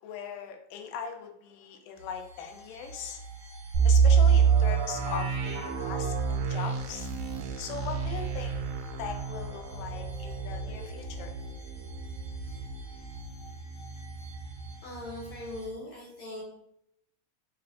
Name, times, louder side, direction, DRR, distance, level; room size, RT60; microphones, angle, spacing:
voice 1, 0.0-3.2 3.8-7.1 7.6-8.6 8.9-11.3, left 7 dB, 90° left, 4 dB, 2.2 m, -39 dB
sound 1, 2.0-15.7, equal, 50° left, 0.6 m, -44 dB
sound 2, 3.7-13.5 13.8-13.9 14.4-14.7, right 6 dB, 80° right, 1.7 m, -27 dB
voice 2, 14.8-16.4, left 1 dB, 75° left, -3 dB, 1.6 m, -40 dB
6.4 x 2.5 x 2.4 m, 0.79 s
omnidirectional pair, 3.6 m